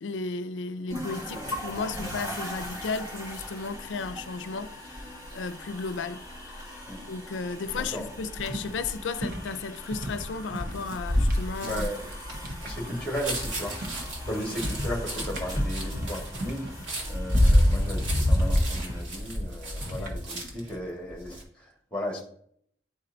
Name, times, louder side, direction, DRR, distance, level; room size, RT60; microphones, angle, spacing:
voice 1, 0.0-6.3 7.1-11.9 14.3-14.6 19.9-20.1, left 4 dB, 80° left, 0.4 m, -34 dB
sound 1, 0.9-19.8, equal, 20° right, 2.8 m, -40 dB
voice 2, 7.7-8.1 11.6-12.1 12.6-13.8 14.3-16.7 17.1-22.2, equal, 5° left, 1.6 m, -35 dB
sound 2, 7.8-11.5 11.8-13.4 13.7-14.1 14.5-14.9 15.1-17.8 18.3-19.0 19.8-20.2, right 1 dB, 50° right, 1.1 m, -39 dB
sound 3, 10.5-20.7 21.1-21.4, equal, 80° right, 1.8 m, -27 dB
10.5 x 4.3 x 2.6 m
head